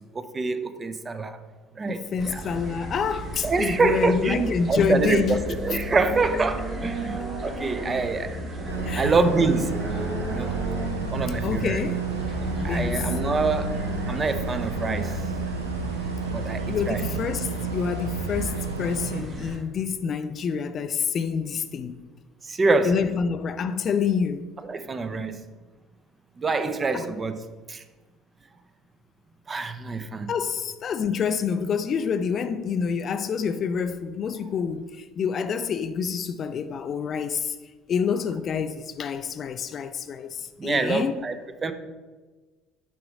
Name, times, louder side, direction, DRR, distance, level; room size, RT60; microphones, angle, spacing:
voice 1, 0.1-1.4 1.8-2.4 3.4-8.3 9.0-9.9 10.3-10.6 11.1-11.9 12.6-13.8 14.1-15.1 16.3-17.1 22.4-22.9 24.7-25.4 26.4-27.4 27.7-27.8 29.5-30.3 40.6-41.3 41.6-41.7, right 3 dB, 30° right, 0.5 m, -25 dB
voice 2, 1.9-5.4 5.7-5.8 7.0-7.3 8.8-9.1 11.4-12.0 12.6-13.1 16.7-22.0 22.8-24.5 26.9-27.1 30.3-37.6 37.9-41.1, left 6 dB, 45° left, 0.3 m, -27 dB
sound 1, 2.2-19.6, equal, 50° right, 1.8 m, -33 dB
sound 2, 8.7-19.2, right 6 dB, 85° right, 0.4 m, -32 dB
5.7 x 5.0 x 3.6 m
figure-of-eight pair, 60°, 0 cm